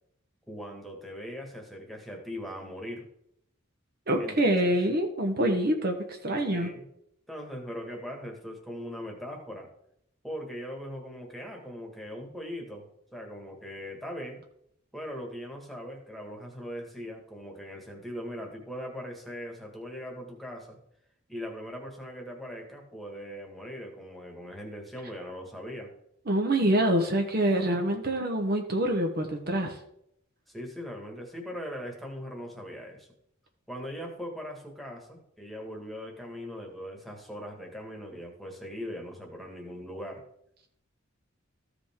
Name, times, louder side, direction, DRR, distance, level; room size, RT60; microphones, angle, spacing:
voice 1, 0.5-3.1 4.2-4.4 4.7-4.8 6.5-6.9 7.3-9.7 10.2-12.9 13.1-14.4 14.9-20.8 21.3-25.9 30.5-33.1 33.7-40.2, equal, ahead, 0 dB, 1.6 m, -40 dB
voice 2, 4.1-6.7 26.3-29.8, right 1 dB, 50° right, 3 dB, 0.9 m, -26 dB
14.0 x 5.0 x 3.6 m, 0.75 s
head